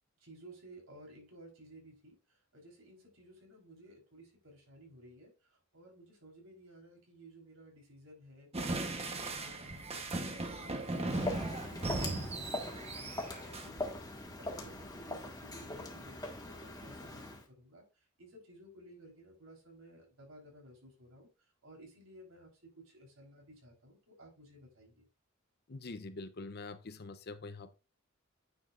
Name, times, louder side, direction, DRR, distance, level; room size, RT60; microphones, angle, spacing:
voice 1, 0.2-2.2 2.5-8.5 8.9-11.4 11.7-17.2 17.6-17.8 18.2-21.3 21.6-25.1, right 1 dB, 85° right, 4.1 m, -56 dB
sound 1, 8.5-13.7, right 2 dB, 30° right, 1.1 m, -37 dB
Walk footsteps, 10.8-17.4, left 2 dB, 20° left, 1.6 m, -42 dB
voice 2, 25.7-27.7, left 3 dB, 50° left, 0.7 m, -45 dB
9.6 x 6.3 x 2.5 m
head